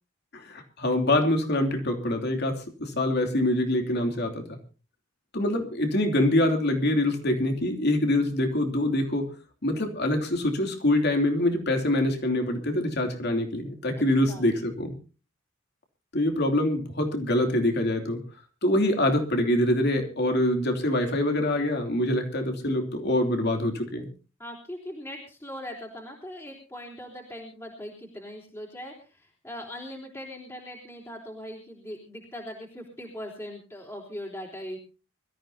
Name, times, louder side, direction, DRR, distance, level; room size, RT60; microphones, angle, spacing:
voice 1, 0.3-4.6 5.3-9.3 9.6-14.9 16.1-18.2 18.6-24.1, left 1 dB, 60° left, 4 dB, 3.0 m, -25 dB
voice 2, 14.0-14.5 24.4-34.8, equal, 15° left, -2 dB, 3.6 m, -40 dB
24.0 x 14.0 x 2.8 m, 0.33 s
head